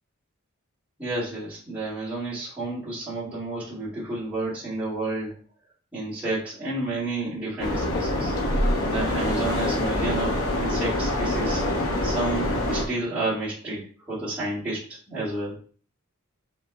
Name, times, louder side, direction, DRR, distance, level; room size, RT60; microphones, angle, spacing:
voice 1, 1.0-5.3 5.9-8.3 8.8-11.6 12.0-15.6, right 2 dB, 5° right, -12 dB, 2.2 m, -31 dB
sound 1, 7.6-12.8, left 1 dB, 70° left, 1.0 m, -25 dB
5.1 x 4.2 x 2.3 m, 0.41 s
head